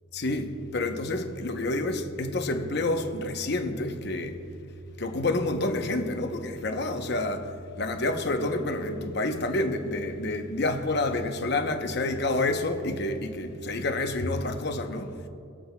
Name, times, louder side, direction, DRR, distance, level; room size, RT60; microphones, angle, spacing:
voice 1, 0.1-4.4 5.0-15.1, left 2 dB, 50° left, 0.7 m, -28 dB
19.5 x 8.1 x 2.2 m
head